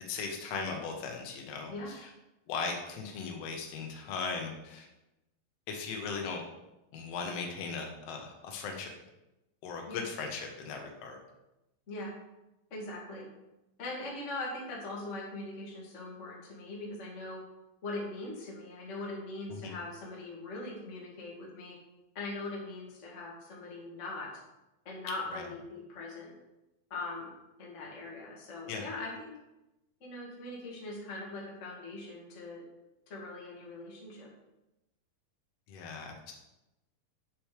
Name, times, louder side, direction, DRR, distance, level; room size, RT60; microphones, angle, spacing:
voice 1, 0.1-2.1 2.5-4.9 5.7-6.4 6.9-8.9 9.6-11.2 19.5-19.7 25.3-25.4 28.7-28.8 35.7-36.3, left 5 dB, 60° left, 2 dB, 1.8 m, -38 dB
voice 2, 1.7-2.0 9.9-10.0 11.9-12.1 12.7-13.3 13.8-17.4 17.8-21.8 22.1-24.3 24.8-26.3 26.9-27.3 27.6-29.3 30.0-32.6 33.1-34.3, left 2 dB, 30° left, -4 dB, 1.3 m, -41 dB
8.4 x 6.9 x 3.3 m, 0.95 s
omnidirectional pair, 4.1 m